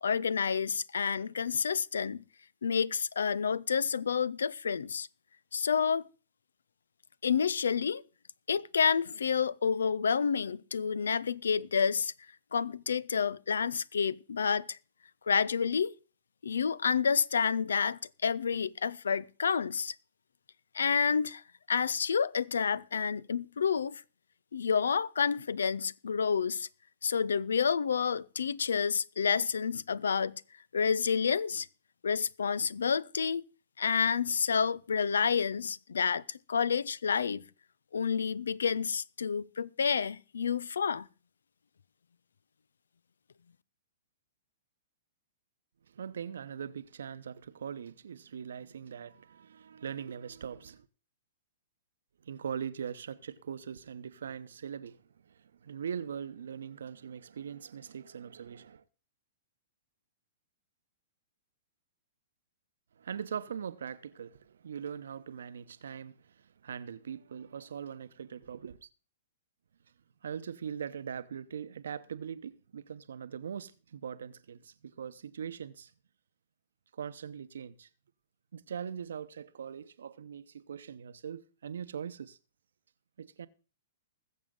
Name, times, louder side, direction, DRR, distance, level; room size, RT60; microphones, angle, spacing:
voice 1, 0.0-2.2 2.6-5.1 5.5-6.1 7.2-8.0 8.5-12.1 12.5-14.8 15.3-15.9 16.4-19.9 20.7-21.4 21.7-24.0 24.5-26.7 27.0-30.4 30.7-31.7 32.0-33.4 33.8-37.4 37.9-41.1, left 6 dB, 75° left, 0.5 m, -29 dB
voice 2, 45.9-50.9 52.2-55.0 55.2-58.8 63.0-68.9 70.2-75.9 76.9-77.9 78.5-82.4 83.2-83.5, right 7 dB, 70° right, 0.9 m, -41 dB
20.5 x 7.3 x 3.9 m
figure-of-eight pair, 115°, 0 cm